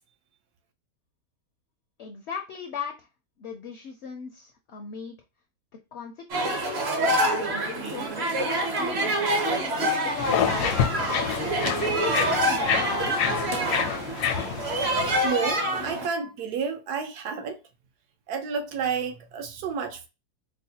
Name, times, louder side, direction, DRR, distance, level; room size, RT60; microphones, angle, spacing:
voice 1, 2.0-3.1 3.4-5.2 5.9-6.9 7.4-9.2 9.9-11.2 11.8-13.6, left 6 dB, 65° left, 0.7 m, -38 dB
sound 1, 6.3-16.1, right 1 dB, 50° right, 0.9 m, -26 dB
sound 2, 10.2-15.3, left 8 dB, 80° left, 1.2 m, -28 dB
voice 2, 15.2-17.6 18.3-20.1, right 6 dB, 80° right, 1.3 m, -30 dB
4.5 x 2.1 x 2.7 m
omnidirectional pair, 1.7 m